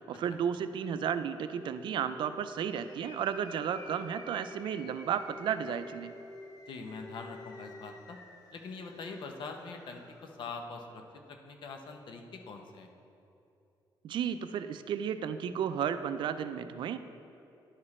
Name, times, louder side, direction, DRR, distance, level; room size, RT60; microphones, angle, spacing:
voice 1, 0.1-6.1 14.0-17.0, right 8 dB, 75° right, 11 dB, 0.4 m, -33 dB
sound 1, 0.8-1.2 1.4-2.9 3.2-4.8 5.0-6.6 6.8-7.8, left 2 dB, 5° left, 0.6 m, -49 dB
sound 2, 2.7-10.6, left 2 dB, 45° left, 1.4 m, -55 dB
voice 2, 6.7-8.2 8.5-11.0 11.3-12.9, left 4 dB, 75° left, 4 dB, 0.8 m, -43 dB
11.0 x 5.0 x 4.2 m, 2.8 s
cardioid pair, 125°, 8 cm